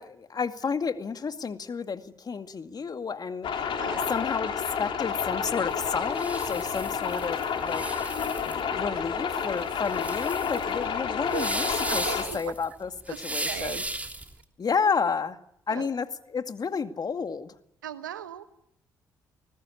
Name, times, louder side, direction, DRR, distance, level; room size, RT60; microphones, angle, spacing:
voice 1, 0.0-3.5 4.1-4.5 4.8-12.9 13.2-13.8 14.6-15.4 15.7-17.5, left 5 dB, 40° left, 8 dB, 2.2 m, -31 dB
sound 1, 3.4-12.2, left 6 dB, 55° left, 3.6 m, -30 dB
voice 2, 3.8-4.1 11.3-11.4 11.9-12.5 13.1-13.2 13.4-13.8 15.7-15.9 17.8-18.6, right 11 dB, 85° right, 12 dB, 1.2 m, -37 dB
sound 2, 5.7-14.4, right 2 dB, 15° right, 3.4 m, -36 dB
28.0 x 21.0 x 8.6 m, 0.77 s
hypercardioid pair, 45°, 10 cm